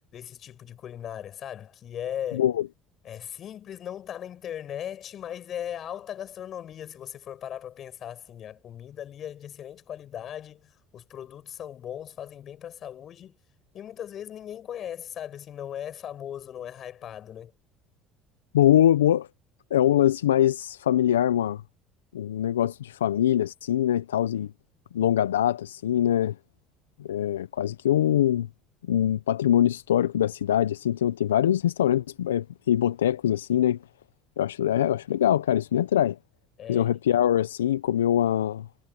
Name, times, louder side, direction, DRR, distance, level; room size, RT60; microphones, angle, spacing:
voice 1, 0.1-2.5 3.0-13.4 13.7-17.5 36.6-37.3, left 10 dB, 50° left, 7.3 m, -38 dB
voice 2, 18.5-19.3 19.7-21.6 22.1-24.5 24.9-26.3 27.0-28.5 28.9-33.8 34.4-36.2 36.7-38.7, left 11 dB, 85° left, 0.8 m, -23 dB
hypercardioid pair, 70°, 0 cm